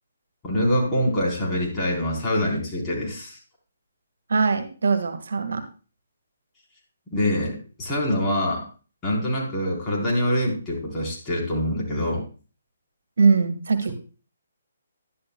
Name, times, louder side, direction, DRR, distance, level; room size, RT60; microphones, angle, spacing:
voice 1, 0.4-3.4 7.1-8.6 9.0-12.2, equal, 15° left, -5 dB, 3.8 m, -25 dB
voice 2, 4.3-5.6 13.2-13.9, right 4 dB, 75° right, 8 dB, 1.5 m, -21 dB
11.5 x 11.5 x 2.2 m, 0.36 s
hypercardioid pair, 155°, 0 cm